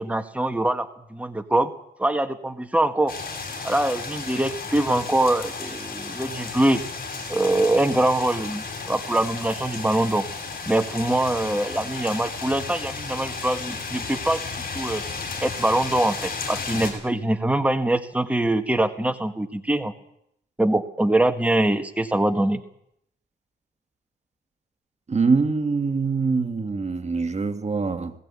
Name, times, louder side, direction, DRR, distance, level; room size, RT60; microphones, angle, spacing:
voice 1, 0.0-1.7 2.0-3.1 3.6-6.8 7.3-10.3 10.7-14.4 14.7-15.0 15.4-19.9 20.6-22.6, right 1 dB, 5° right, 7 dB, 1.7 m, -23 dB
sound 1, 3.1-16.9, left 4 dB, 50° left, 7.3 m, -33 dB
voice 2, 25.1-28.1, right 4 dB, 35° right, 8 dB, 1.7 m, -24 dB
20.0 x 16.0 x 8.6 m, 0.75 s
cardioid pair, 75°, 18 cm